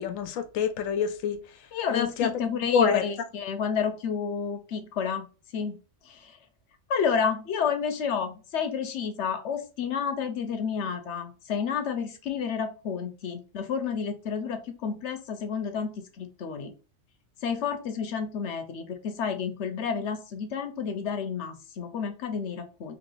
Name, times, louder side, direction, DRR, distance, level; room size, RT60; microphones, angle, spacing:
voice 1, 0.0-1.4 1.9-2.3 2.7-3.0, left 7 dB, 90° left, 1.0 m, -26 dB
voice 2, 1.7-5.3 5.5-5.8 6.0-6.4 6.9-16.7 17.4-22.9, left 6 dB, 65° left, 0.9 m, -30 dB
3.0 x 2.9 x 3.7 m
omnidirectional pair, 1.4 m